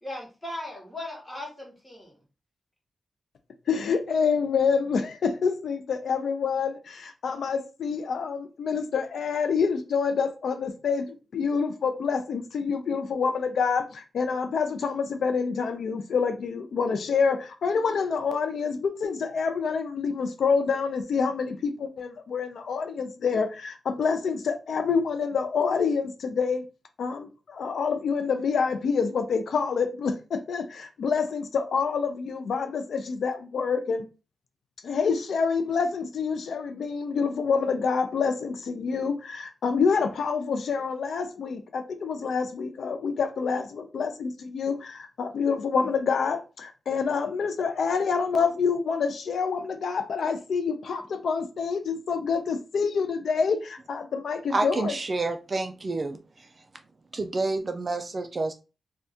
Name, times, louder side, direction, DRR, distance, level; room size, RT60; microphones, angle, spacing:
voice 1, 0.0-2.1, left 1 dB, 10° left, 1.3 m, -38 dB
voice 2, 3.7-26.6 27.0-34.0 34.8-54.9, left 5 dB, 80° left, 0.4 m, -27 dB
voice 3, 54.5-56.5 57.1-58.5, right 3 dB, 35° right, 0.3 m, -29 dB
2.6 x 2.3 x 3.5 m
wide cardioid pair, 140°, 0 cm